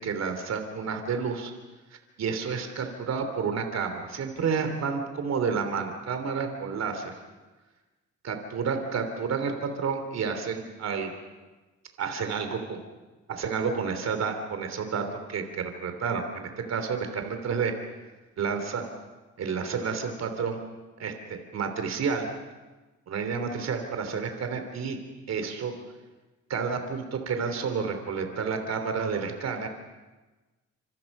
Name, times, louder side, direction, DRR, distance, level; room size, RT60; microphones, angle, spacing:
voice 1, 0.0-1.5 1.9-7.2 8.2-11.1 12.0-12.8 13.3-17.7 18.4-18.8 19.4-20.6 21.0-22.3 23.1-25.0 25.3-25.7 26.5-29.7, right 5 dB, 60° right, 6 dB, 3.2 m, -30 dB
27.5 x 26.5 x 5.5 m, 1.2 s
cardioid pair, 90°, 30 cm